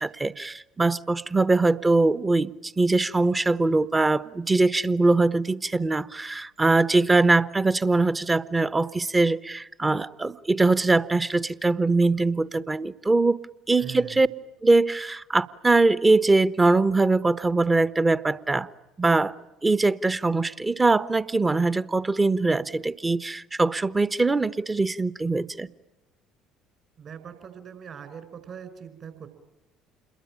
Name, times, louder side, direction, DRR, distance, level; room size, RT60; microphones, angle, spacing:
voice 1, 0.0-13.4 13.7-14.3 14.6-18.7 19.0-19.3 19.6-25.7, right 3 dB, 20° right, 16 dB, 1.1 m, -22 dB
voice 2, 13.8-14.2 27.0-29.3, right 7 dB, 45° right, 10 dB, 5.0 m, -41 dB
28.5 x 22.0 x 8.9 m, 1.0 s
hypercardioid pair, 60°, 0 cm